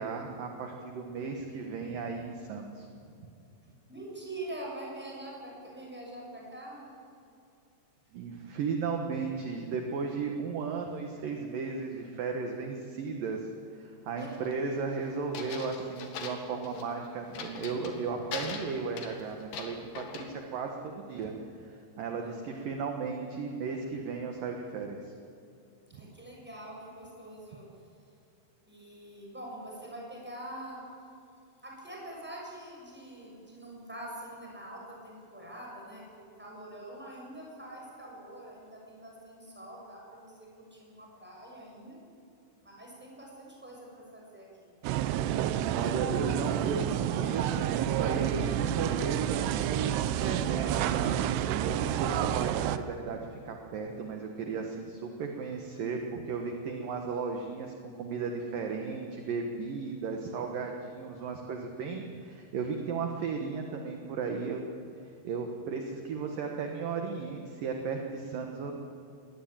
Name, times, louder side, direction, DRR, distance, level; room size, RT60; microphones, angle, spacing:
voice 1, 0.0-2.9 8.1-21.3 21.6-25.1 25.9-26.1 45.7-51.3 51.6-64.6 65.2-68.8, right 5 dB, 60° right, 3 dB, 2.6 m, -35 dB
voice 2, 3.9-6.9 14.2-14.5 22.1-22.6 25.9-27.7 28.7-30.8 31.6-42.0 42.6-44.7, right 1 dB, ahead, -2 dB, 6.4 m, -45 dB
sound 1, 14.2-14.5 15.4-16.9 17.3-18.0 18.3-20.3, left 6 dB, 65° left, 3.8 m, -41 dB
sound 2, 44.8-52.8, right 11 dB, 75° right, 2.6 m, -29 dB
22.0 x 18.5 x 8.9 m, 2.6 s
omnidirectional pair, 5.4 m